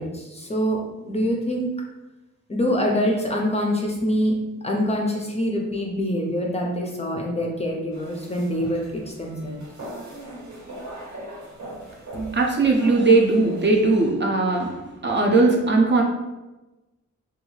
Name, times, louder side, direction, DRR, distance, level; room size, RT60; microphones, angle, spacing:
voice 1, 0.0-1.7 2.5-4.3 4.6-9.6, equal, 20° left, -1 dB, 0.4 m, -25 dB
sound 1, 7.9-13.8, right 1 dB, 85° right, 1.4 m, -40 dB
voice 2, 12.1-14.8 15.0-16.0, right 3 dB, 40° right, 1 dB, 0.5 m, -19 dB
2.6 x 2.3 x 3.0 m, 1.1 s
wide cardioid pair, 110°, 29 cm